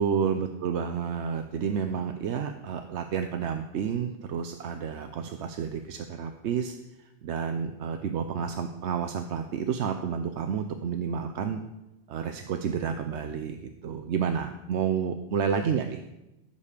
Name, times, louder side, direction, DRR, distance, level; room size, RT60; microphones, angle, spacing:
voice 1, 0.0-11.6 12.1-16.0, right 7 dB, 70° right, 7 dB, 0.9 m, -30 dB
14.5 x 5.4 x 6.7 m, 0.96 s
omnidirectional pair, 1.2 m